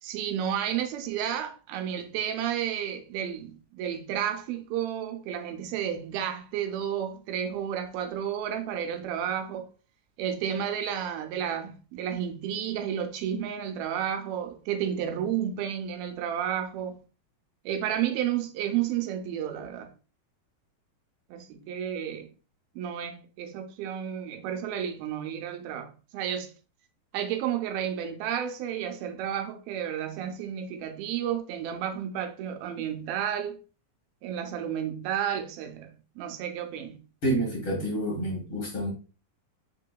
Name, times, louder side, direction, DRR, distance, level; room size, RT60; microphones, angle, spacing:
voice 1, 0.0-9.7 10.2-17.0 17.7-19.9 21.3-22.3 22.8-26.5 27.1-33.6 34.2-36.9, right 9 dB, 85° right, 2.6 m, -31 dB
voice 2, 37.2-38.9, right 1 dB, 50° left, 1.6 m, -28 dB
5.6 x 3.7 x 2.2 m
omnidirectional pair, 4.2 m